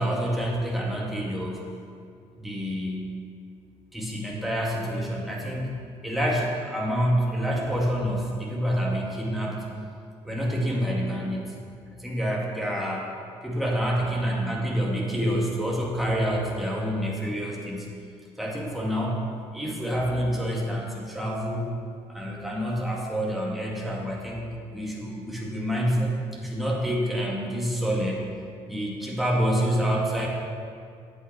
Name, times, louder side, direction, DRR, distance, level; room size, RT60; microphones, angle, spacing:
voice 1, 0.0-1.6 2.4-3.1 3.9-5.7 6.0-9.6 10.2-11.5 11.9-13.1 13.4-17.9 18.4-19.2 19.5-21.8 22.1-26.1 26.4-28.3 28.7-30.3, equal, ahead, -3 dB, 2.1 m, -27 dB
7.9 x 5.9 x 6.2 m, 2.3 s
hypercardioid pair, 55°, 14 cm